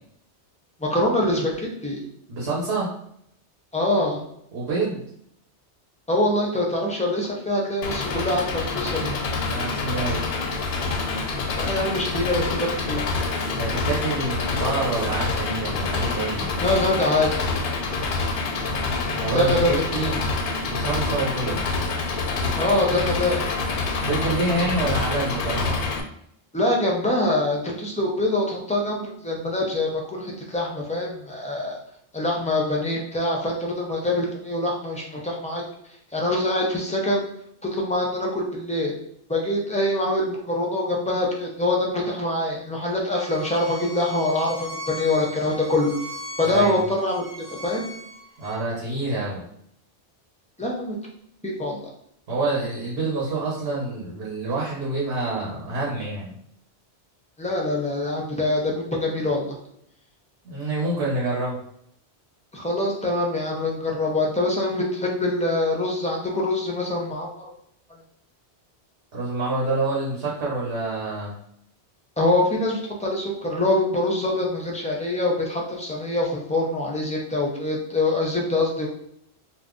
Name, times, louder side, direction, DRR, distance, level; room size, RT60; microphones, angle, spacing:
voice 1, 0.8-2.0 3.7-4.2 6.1-9.1 11.5-13.1 16.6-17.3 19.3-19.9 22.5-23.4 26.5-31.8 32.1-35.6 36.1-37.2 37.7-38.9 39.3-45.9 46.4-47.2 47.5-47.9 50.6-51.0 51.4-51.8 57.4-59.6 62.5-67.4 72.2-78.9, left 1 dB, 10° left, -2 dB, 0.4 m, -24 dB
voice 2, 2.3-2.9 4.5-5.0 9.5-10.3 13.5-16.5 19.0-20.2 20.7-21.7 24.0-25.8 46.4-46.8 48.4-49.5 52.3-56.3 60.4-61.6 69.1-71.3, right 2 dB, 65° right, -5 dB, 1.0 m, -27 dB
Engine, 7.8-26.0, left 3 dB, 60° left, 0.6 m, -27 dB
Bowed string instrument, 43.1-48.6, left 1 dB, 40° right, 0.7 m, -39 dB
2.5 x 2.2 x 3.6 m, 0.70 s
omnidirectional pair, 1.2 m